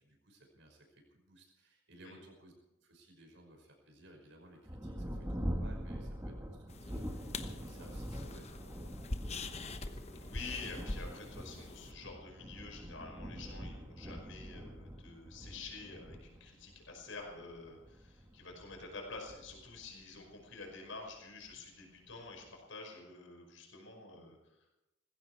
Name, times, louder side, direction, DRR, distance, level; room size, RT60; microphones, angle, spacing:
voice 1, 0.0-2.5 2.8-9.8, right 1 dB, 70° right, 2 dB, 5.6 m, -59 dB
Thunder, 4.6-20.7 21.5-21.6 22.1-22.6, equal, 15° right, 1.6 m, -44 dB
sound 1, 6.7-11.9, left 2 dB, 35° left, 1.0 m, -44 dB
voice 2, 10.2-24.8, left 3 dB, 80° left, 2 dB, 5.3 m, -48 dB
19.5 x 16.0 x 4.7 m, 0.93 s
head